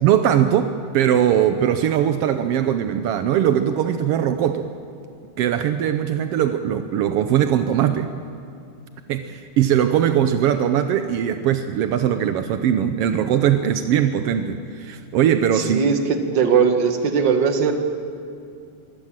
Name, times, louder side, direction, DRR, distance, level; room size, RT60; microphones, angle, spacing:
voice 1, 0.0-4.7 5.4-8.1 9.1-15.8, right 9 dB, 80° right, 9 dB, 1.3 m, -20 dB
voice 2, 15.5-17.7, right 6 dB, 45° right, 6 dB, 1.7 m, -19 dB
24.0 x 17.0 x 7.5 m, 2.4 s
omnidirectional pair, 3.6 m